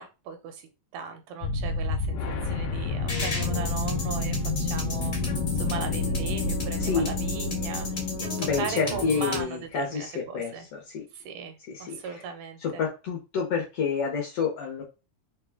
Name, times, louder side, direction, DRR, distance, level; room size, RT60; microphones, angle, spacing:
voice 1, 0.0-10.7 11.1-12.8, right 5 dB, 85° right, 7 dB, 2.3 m, -38 dB
sound 1, 1.4-9.1, left 3 dB, 85° left, 1.3 m, -30 dB
sound 2, 3.1-9.4, left 3 dB, 35° left, 1.1 m, -33 dB
voice 2, 8.4-11.0 11.7-12.0 12.6-14.8, left 5 dB, 70° left, 0 dB, 1.5 m, -29 dB
4.9 x 2.2 x 3.4 m, 0.30 s
omnidirectional pair, 3.5 m